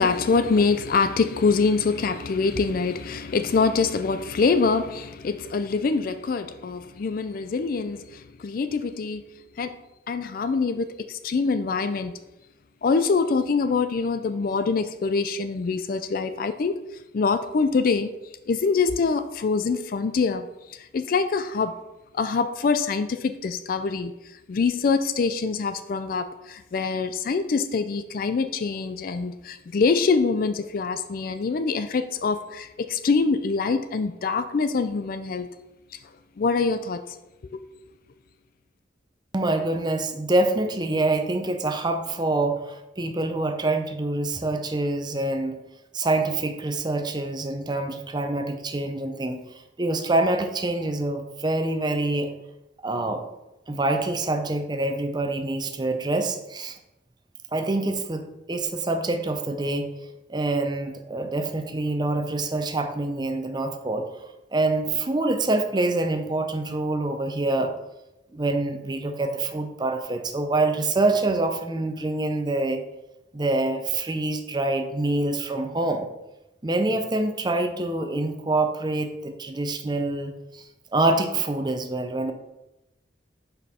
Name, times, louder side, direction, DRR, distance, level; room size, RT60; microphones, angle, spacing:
voice 1, 0.0-9.3 9.6-9.7 10.1-12.1 12.8-16.8 17.1-18.1 18.5-21.8 22.1-24.1 24.5-35.5 36.4-37.0 37.5-37.6, left 4 dB, 50° left, 0.4 m, -24 dB
voice 2, 39.3-45.6 45.9-49.4 49.8-52.3 52.8-53.2 53.7-56.8 57.5-59.9 60.3-67.7 68.3-72.8 73.3-76.1 76.6-82.3, right 2 dB, 25° right, 0.6 m, -26 dB
6.3 x 5.3 x 4.2 m
head